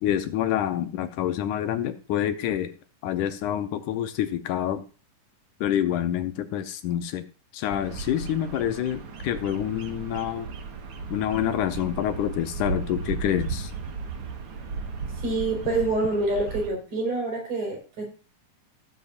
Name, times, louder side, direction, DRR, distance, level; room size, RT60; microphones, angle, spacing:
voice 1, 0.0-2.8 3.0-4.8 5.6-7.3 7.5-10.5 11.1-13.7, left 11 dB, 80° left, 2.1 m, -27 dB
Bird vocalization bird call bird song, 7.7-16.7, right 4 dB, 55° right, 1.7 m, -35 dB
voice 2, 15.2-18.0, right 2 dB, 70° right, 5.9 m, -26 dB
16.5 x 7.9 x 2.5 m
omnidirectional pair, 3.7 m